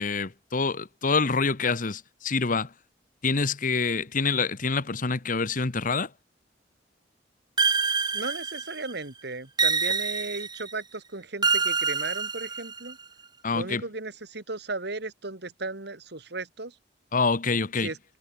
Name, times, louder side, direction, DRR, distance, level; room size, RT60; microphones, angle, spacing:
voice 1, 0.0-2.7 3.2-6.1 13.4-13.8 17.1-17.9, left 4 dB, 45° left, 1.1 m, -26 dB
sound 1, 7.6-8.9 9.6-10.7 11.4-12.9, right 5 dB, 25° right, 1.7 m, -26 dB
voice 2, 8.1-13.0 13.5-16.7 17.8-18.0, right 3 dB, 65° right, 2.6 m, -36 dB
head